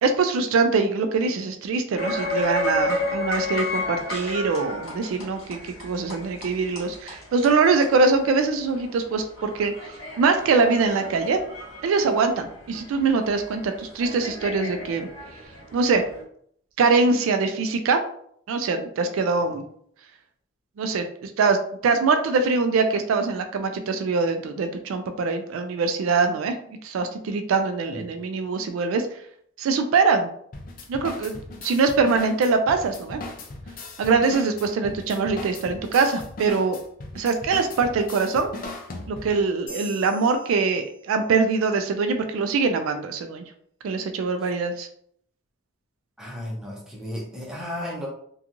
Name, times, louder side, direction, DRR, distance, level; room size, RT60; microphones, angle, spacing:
voice 1, 0.0-9.7 10.2-11.4 11.8-15.1 15.7-16.0 16.8-18.0 18.5-19.6 20.8-21.6 21.8-26.5 26.8-29.1 29.6-30.3 30.9-33.2 34.0-36.8 37.2-38.5 39.1-43.4 43.8-44.9, right 4 dB, 75° right, 7 dB, 0.3 m, -23 dB
sound 1, 2.0-16.2, left 1 dB, 80° left, 1.2 m, -32 dB
sound 2, 30.5-39.5, left 2 dB, 40° left, 0.4 m, -38 dB
sound 3, 39.7-41.5, right 1 dB, 60° left, 0.9 m, -44 dB
voice 2, 46.2-48.1, left 1 dB, 5° right, -4 dB, 0.6 m, -34 dB
2.8 x 2.3 x 2.5 m, 0.66 s
head